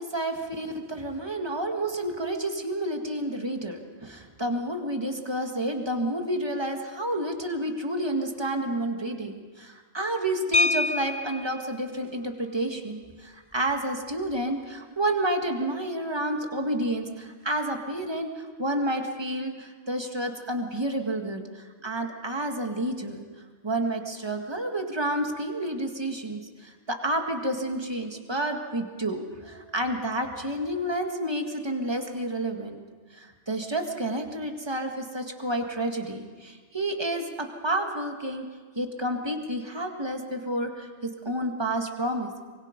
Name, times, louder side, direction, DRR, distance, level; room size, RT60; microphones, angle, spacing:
voice 1, 0.0-23.2 23.6-32.8 33.1-38.4 38.8-42.4, right 1 dB, 20° right, 3 dB, 1.9 m, -30 dB
sound 1, 10.5-11.6 13.1-13.2 13.5-13.7 14.1-14.4, left 3 dB, 25° left, 0.7 m, -26 dB
24.5 x 23.0 x 5.3 m, 1.5 s
omnidirectional pair, 1.2 m